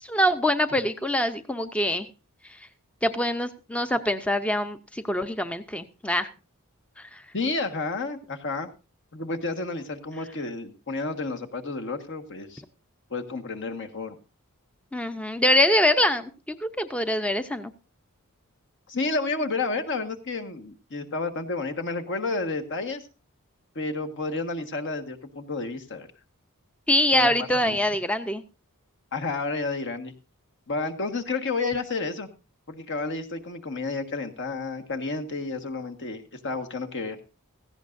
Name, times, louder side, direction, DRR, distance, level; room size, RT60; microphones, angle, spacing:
voice 1, 0.0-2.1 3.0-6.3 7.0-7.2 14.9-16.3 16.6-17.7 26.9-28.4, left 1 dB, 5° left, 9 dB, 0.6 m, -24 dB
voice 2, 7.3-8.7 9.1-12.6 13.1-14.2 18.9-23.0 23.7-26.1 27.1-27.3 27.6-27.8 29.1-30.1 30.7-32.3 32.7-37.2, left 3 dB, 55° left, 6 dB, 1.6 m, -31 dB
17.0 x 15.0 x 2.6 m, 0.31 s
head